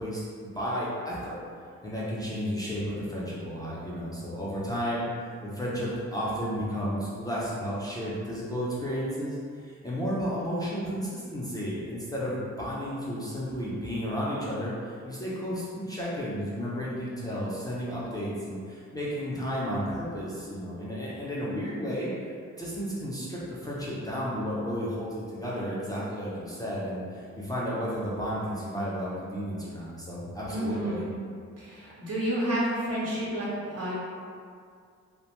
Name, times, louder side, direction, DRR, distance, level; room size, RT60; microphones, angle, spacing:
voice 1, 0.0-1.4 1.8-5.1 5.4-22.3 22.6-31.0, equal, 15° left, -8 dB, 0.4 m, -32 dB
voice 2, 30.5-31.1 31.6-33.9, right 1 dB, 55° right, -7 dB, 0.9 m, -30 dB
2.5 x 2.1 x 2.9 m, 2.2 s
cardioid pair, 110°, 29 cm